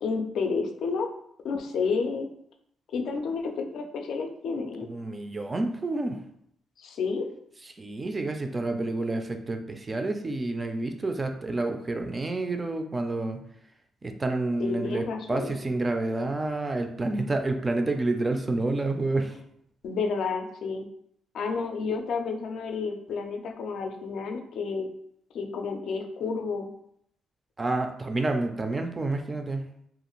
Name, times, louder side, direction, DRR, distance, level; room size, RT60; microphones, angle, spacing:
voice 1, 0.0-1.1 1.4-2.3 2.9-4.9 6.8-7.3 14.6-15.5 19.8-20.9 21.3-24.9 25.3-26.7, left 4 dB, 70° left, 4 dB, 0.4 m, -30 dB
voice 2, 4.8-6.2 7.8-13.4 14.0-19.4 27.6-29.7, right 2 dB, 25° right, 5 dB, 0.3 m, -29 dB
2.4 x 2.3 x 3.0 m, 0.71 s
cardioid pair, 90°, 0 cm